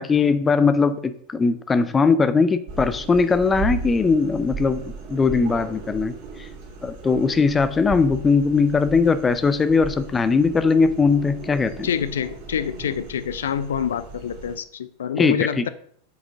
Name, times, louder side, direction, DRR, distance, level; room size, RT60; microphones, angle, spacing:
voice 1, 0.0-4.8 5.1-6.1 6.4-6.5 6.8-11.9 15.2-15.6, left 4 dB, 15° left, 0.6 m, -20 dB
sound 1, 2.7-14.6, right 4 dB, 50° right, 2.6 m, -36 dB
voice 2, 11.8-15.7, left 8 dB, 65° left, 0.5 m, -26 dB
8.1 x 5.1 x 6.4 m
figure-of-eight pair, 90°, 0 cm